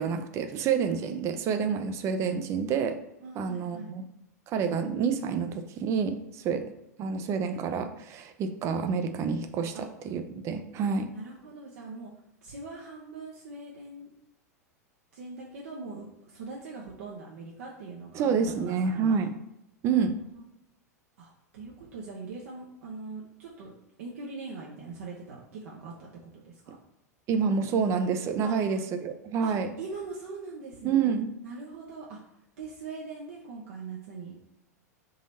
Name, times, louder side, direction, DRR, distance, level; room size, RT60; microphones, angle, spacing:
voice 1, 0.0-3.0 3.3-4.1 4.5-6.7 7.0-11.1 18.1-19.3 19.8-20.2 27.3-29.7 30.8-31.3, right 6 dB, 35° right, 8 dB, 0.5 m, -28 dB
voice 2, 3.2-3.9 9.7-9.9 11.2-12.1 12.4-14.1 15.1-18.2 18.5-19.2 19.9-20.1 21.2-23.7 24.0-26.7 28.4-28.5 29.4-32.2 32.6-34.4, right 3 dB, 60° right, -4 dB, 0.9 m, -42 dB
3.8 x 3.0 x 4.1 m, 0.86 s
figure-of-eight pair, 90°, 9 cm